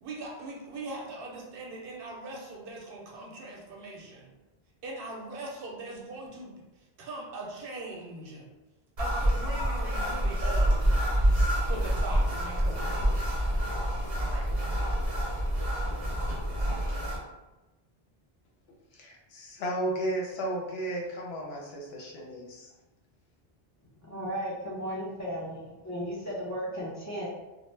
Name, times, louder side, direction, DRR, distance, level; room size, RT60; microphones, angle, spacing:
voice 1, 0.0-4.3 4.8-6.6 7.0-8.4 9.0-11.0 11.6-13.5 14.1-15.0, right 2 dB, 70° right, -1 dB, 0.7 m, -41 dB
sound 1, 9.0-17.2, equal, 40° right, 0.7 m, -27 dB
voice 2, 18.9-22.7, right 1 dB, 80° left, -2 dB, 0.9 m, -34 dB
voice 3, 24.0-27.3, equal, 25° left, -6 dB, 0.4 m, -35 dB
2.1 x 2.0 x 3.1 m, 1.1 s
omnidirectional pair, 1.0 m